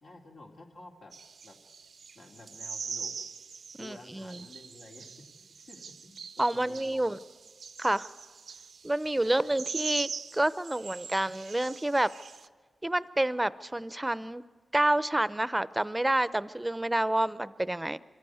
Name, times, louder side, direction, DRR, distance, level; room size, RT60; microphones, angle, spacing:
voice 1, 0.0-1.1 1.4-1.6 2.1-3.1 3.8-7.2 9.2-9.6, left 2 dB, 75° left, 0 dB, 2.9 m, -52 dB
sound 1, 1.1-12.5, right 5 dB, 75° right, 0.5 m, -42 dB
voice 2, 3.8-4.5 6.4-7.2 7.8-8.1 8.8-12.1 12.8-14.4 14.7-18.0, right 1 dB, 15° right, 16 dB, 0.6 m, -28 dB
25.0 x 14.0 x 9.3 m, 1.5 s
cardioid pair, 65°, 0 cm